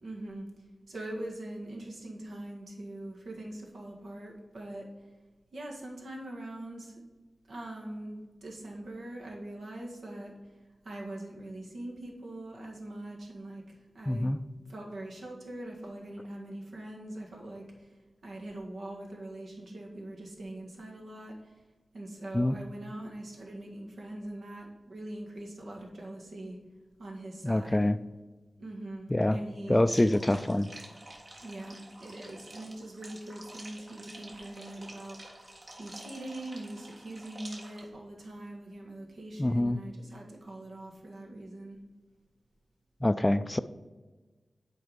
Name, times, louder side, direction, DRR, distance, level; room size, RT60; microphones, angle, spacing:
voice 1, 0.0-0.5 0.9-4.9 5.5-7.0 7.5-10.5 10.8-14.4 14.7-21.6 21.9-26.6 27.0-27.9 28.6-29.9 31.4-35.2 35.8-41.8, right 1 dB, 80° right, 0 dB, 1.6 m, -42 dB
voice 2, 14.1-14.4 22.3-22.5 27.4-28.0 29.1-29.4 29.7-30.7 39.4-39.8 43.0-43.6, left 1 dB, 20° left, 13 dB, 0.3 m, -25 dB
sound 1, 29.9-37.9, right 1 dB, 50° right, 1.7 m, -49 dB
7.9 x 4.7 x 5.2 m, 1.3 s
wide cardioid pair, 70°, 0 cm